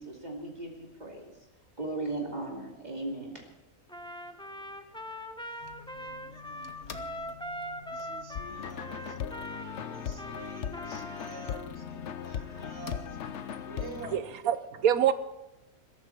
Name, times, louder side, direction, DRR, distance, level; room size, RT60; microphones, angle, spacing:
voice 1, 0.0-1.4 1.8-3.4, right 2 dB, 30° right, -1 dB, 2.7 m, -37 dB
Trumpet, 3.9-11.7, equal, 5° left, 0.8 m, -41 dB
voice 2, 5.3-7.4 7.9-13.2 13.7-14.2, right 3 dB, 50° right, 3 dB, 2.3 m, -49 dB
sound 1, 5.6-13.4, left 6 dB, 85° left, 1.6 m, -49 dB
sound 2, 8.3-14.2, left 8 dB, 60° left, 1.0 m, -38 dB
voice 3, 14.1-15.1, right 9 dB, 80° right, 12 dB, 1.3 m, -25 dB
21.5 x 13.5 x 4.7 m, 0.93 s
omnidirectional pair, 1.5 m